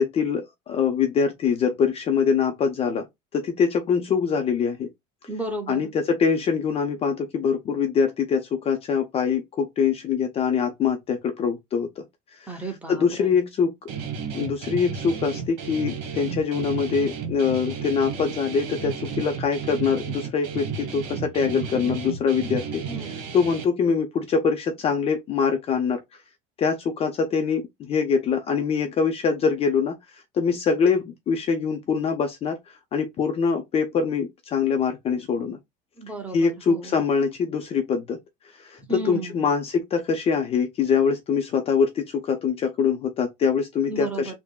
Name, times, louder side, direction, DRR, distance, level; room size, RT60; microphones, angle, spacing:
voice 1, 0.0-3.1 3.3-4.9 5.7-12.0 12.4-12.6 12.9-13.7 14.3-26.0 26.6-35.6 36.3-38.2 38.6-38.8 39.0-44.3, left 6 dB, 30° left, 0.4 m, -24 dB
voice 2, 5.3-5.9 12.5-13.4 22.8-23.2 36.0-37.0 38.9-39.5 43.9-44.3, right 2 dB, 5° right, 0.7 m, -34 dB
Guitar, 13.9-23.6, right 6 dB, 85° right, 1.2 m, -33 dB
3.5 x 2.0 x 2.2 m
cardioid pair, 145°, 21 cm